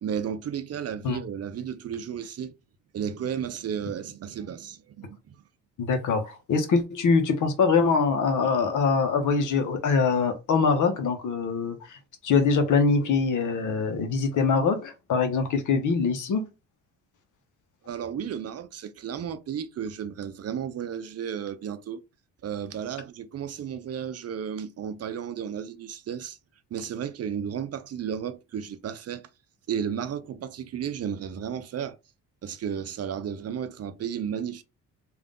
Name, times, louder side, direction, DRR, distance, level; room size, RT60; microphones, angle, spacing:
voice 1, 0.0-2.5 2.9-5.3 17.9-22.0 22.4-26.4 26.7-29.2 29.7-32.0 32.4-34.6, right 8 dB, 45° right, 0.6 m, -33 dB
voice 2, 5.8-12.0 12.2-16.4, left 4 dB, 60° left, 1.0 m, -23 dB
3.4 x 2.5 x 3.7 m
supercardioid pair, 65°, 35 cm